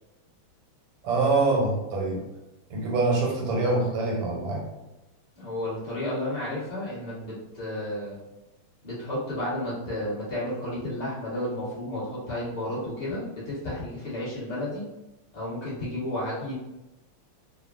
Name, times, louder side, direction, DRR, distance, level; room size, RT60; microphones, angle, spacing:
voice 1, 1.0-2.2 2.7-4.7, right 3 dB, 85° right, -1 dB, 1.7 m, -25 dB
voice 2, 5.4-8.2 8.8-14.8 15.3-16.5, left 1 dB, 25° left, -10 dB, 0.9 m, -32 dB
3.7 x 2.1 x 2.4 m, 1.0 s
omnidirectional pair, 2.4 m